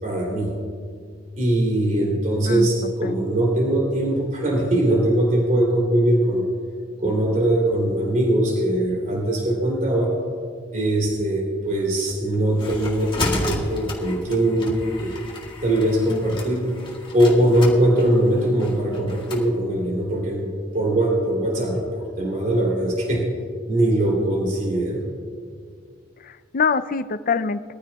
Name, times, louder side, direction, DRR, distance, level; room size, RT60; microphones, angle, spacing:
voice 1, 0.0-0.5 1.4-6.4 7.0-10.1 10.7-15.2 15.6-16.6 17.1-23.3 23.7-25.0, right 1 dB, 45° right, -2 dB, 3.2 m, -21 dB
voice 2, 2.5-3.1 26.2-27.6, left 5 dB, 45° left, 13 dB, 0.5 m, -25 dB
sound 1, 12.1-19.5, left 2 dB, 25° left, 2.1 m, -32 dB
23.5 x 14.5 x 2.4 m, 2.1 s
head